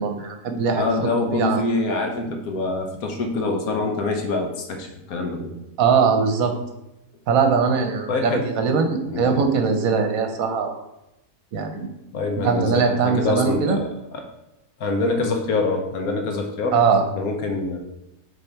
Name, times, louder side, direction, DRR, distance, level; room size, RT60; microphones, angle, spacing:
voice 1, 0.0-1.6 5.8-6.5 7.3-10.8 11.5-11.9 12.4-13.8 16.7-17.0, right 5 dB, 65° right, 5 dB, 1.3 m, -21 dB
voice 2, 0.7-5.5 8.1-8.5 9.1-9.4 12.1-14.2 14.8-16.8 17.1-17.8, left 3 dB, 70° left, 4 dB, 1.3 m, -25 dB
6.8 x 4.1 x 4.5 m, 0.89 s
omnidirectional pair, 1.7 m